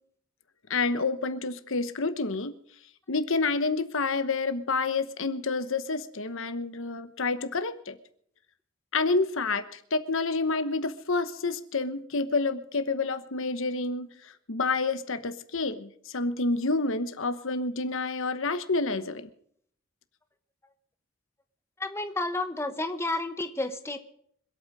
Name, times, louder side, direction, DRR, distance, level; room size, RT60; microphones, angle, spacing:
voice 1, 0.7-2.5 3.1-7.9 8.9-19.3, left 3 dB, 60° left, 11 dB, 1.1 m, -29 dB
voice 2, 21.8-24.0, left 2 dB, 10° left, 7 dB, 0.9 m, -31 dB
26.0 x 8.8 x 4.9 m, 0.65 s
head